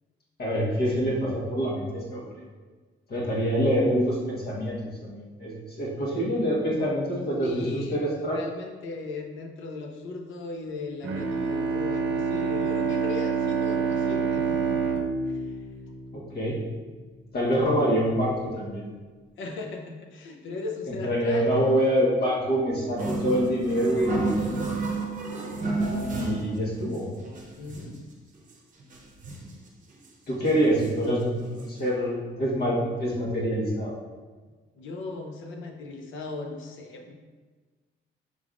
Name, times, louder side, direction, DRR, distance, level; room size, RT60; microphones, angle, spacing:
voice 1, 0.4-2.3 3.1-8.4 16.1-16.6 17.3-18.9 20.9-24.3 26.1-27.1 30.3-33.9, equal, 55° left, -4 dB, 1.3 m, -26 dB
voice 2, 7.4-14.8 15.3-15.5 19.4-21.5 27.6-28.0 34.7-37.1, left 3 dB, 75° left, 3 dB, 0.7 m, -37 dB
Bowed string instrument, 11.0-16.6, right 5 dB, 70° right, 0.7 m, -27 dB
sound 1, 23.0-26.6 26.9-27.0 27.2-28.0 28.5-28.6 28.8-29.6 30.0-30.1 30.4-31.1 31.6-31.7 31.9-32.0, right 2 dB, 40° right, 0.8 m, -31 dB
5.0 x 3.5 x 2.4 m, 1.4 s
cardioid pair, 90°, 20 cm